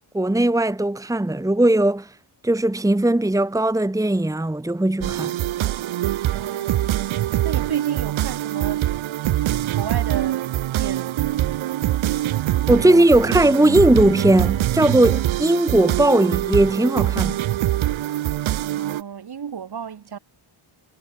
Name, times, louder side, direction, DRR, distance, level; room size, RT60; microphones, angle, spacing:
voice 1, 0.1-2.1 2.4-5.3 12.7-17.4, right 1 dB, 5° right, 1.6 m, -18 dB
sound 1, 5.0-19.0, right 13 dB, 70° right, 0.8 m, -24 dB
voice 2, 6.3-6.9 7.4-8.9 9.4-10.5 10.8-11.5 12.9-13.0 13.3-13.4 18.6-20.2, right 7 dB, 50° right, 4.8 m, -33 dB
wide cardioid pair, 170°, 49 cm